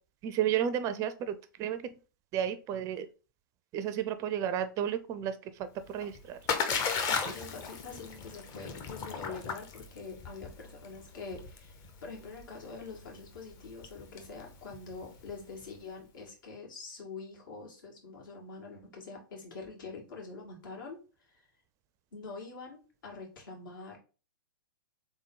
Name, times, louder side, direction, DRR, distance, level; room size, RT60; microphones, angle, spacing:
voice 1, 0.2-1.9 2.3-3.1 3.7-6.4, right 9 dB, 30° right, 12 dB, 0.4 m, -32 dB
Splash splatter, 5.8-15.6, left 5 dB, 30° left, 0.8 m, -36 dB
voice 2, 7.1-21.5 22.1-24.0, left 4 dB, 70° left, 0 dB, 2.1 m, -45 dB
3.7 x 3.7 x 3.8 m, 0.34 s
hypercardioid pair, 115°, 11 cm